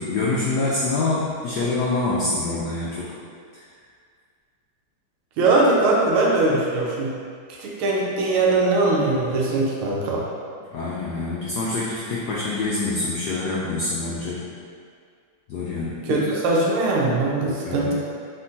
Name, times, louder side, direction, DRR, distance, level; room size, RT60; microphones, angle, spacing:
voice 1, 0.0-3.1 3.5-3.7 10.7-14.5 15.5-16.2 17.6-17.9, left 3 dB, 80° left, -6 dB, 0.9 m, -26 dB
voice 2, 5.4-7.1 7.6-10.2 16.1-17.9, right 2 dB, 75° right, -3 dB, 1.6 m, -21 dB
4.3 x 3.8 x 2.7 m, 2.1 s
omnidirectional pair, 2.4 m